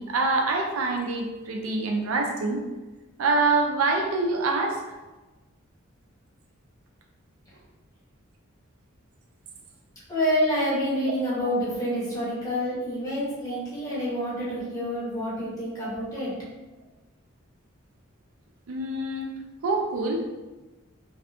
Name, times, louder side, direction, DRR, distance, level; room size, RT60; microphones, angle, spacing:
voice 1, 0.0-2.6 3.2-4.8 13.5-13.6 15.8-15.9 18.7-19.3 19.6-20.2, right 3 dB, 85° right, 2 dB, 0.4 m, -25 dB
voice 2, 10.1-16.3, equal, 15° left, -8 dB, 0.9 m, -27 dB
2.6 x 2.3 x 2.4 m, 1.2 s
head